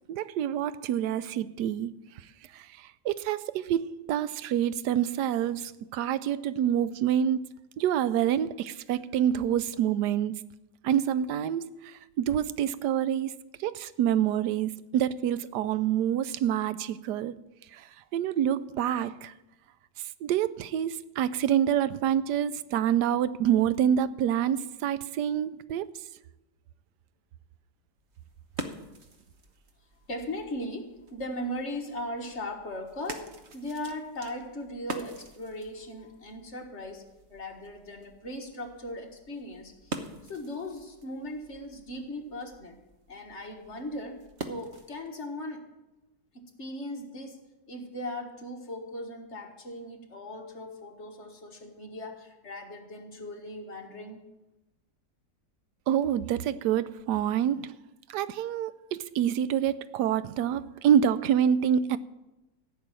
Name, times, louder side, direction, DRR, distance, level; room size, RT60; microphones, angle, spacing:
voice 1, 0.1-2.0 2.5-7.5 7.8-10.4 10.8-13.3 13.6-17.4 17.7-17.9 18.1-19.3 20.2-25.9 55.9-57.8 58.1-62.0, right 10 dB, 90° right, 1.2 m, -27 dB
sound 1, 28.0-45.1, right 2 dB, 45° right, 1.2 m, -45 dB
voice 2, 30.1-37.0 37.3-42.8 43.1-45.7 46.3-54.2, left 1 dB, 45° left, 1.8 m, -38 dB
15.0 x 6.2 x 8.8 m
omnidirectional pair, 1.7 m